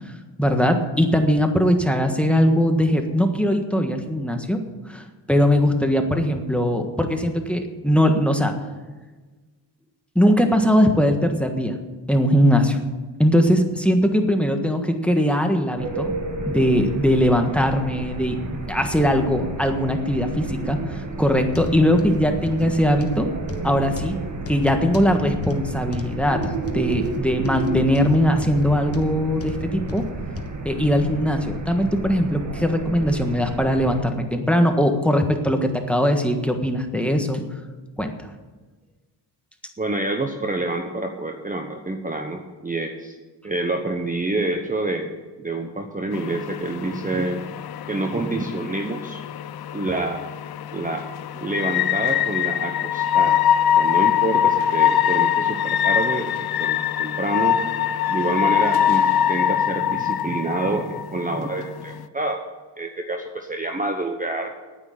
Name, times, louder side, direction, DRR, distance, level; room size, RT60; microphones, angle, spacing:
voice 1, 0.4-4.6 4.9-8.6 10.1-11.7 12.1-12.8 13.2-16.1 16.5-18.4 18.7-23.3 23.6-24.2 24.5-30.0 30.6-37.4 38.0-38.1, equal, 5° left, 4 dB, 1.5 m, -20 dB
sound 1, 15.8-34.0, right 3 dB, 40° right, 2.0 m, -32 dB
sound 2, 21.5-30.6 31.1-31.3 31.9-32.0, left 3 dB, 35° left, 1.3 m, -36 dB
voice 2, 39.8-43.2 43.4-47.4 47.9-49.2 49.7-50.2 50.7-51.1 51.3-53.4 53.7-57.6 58.1-62.4 62.8-64.5, right 2 dB, 20° right, 4 dB, 1.0 m, -27 dB
sound 3, 46.1-62.1, left 10 dB, 60° left, 0.7 m, -23 dB
9.7 x 9.1 x 8.8 m, 1.3 s
cardioid pair, 100°, 43 cm